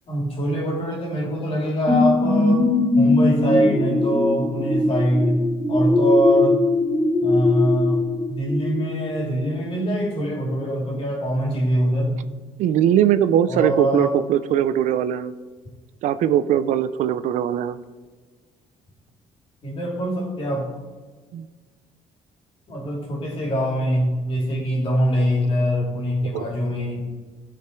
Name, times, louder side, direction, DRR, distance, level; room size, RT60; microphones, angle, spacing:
voice 1, 0.1-6.6 7.2-12.1 13.5-14.2 19.6-20.7 22.7-27.0, equal, 45° left, -1 dB, 2.9 m, -23 dB
sound 1, 1.9-9.2 9.7-9.8, left 2 dB, ahead, 0.9 m, -20 dB
voice 2, 12.6-15.3 16.0-17.8 21.3-21.4 26.3-26.4, right 10 dB, 65° right, 13 dB, 0.4 m, -20 dB
15.0 x 5.0 x 4.6 m, 1.4 s
cardioid pair, 145°, 13 cm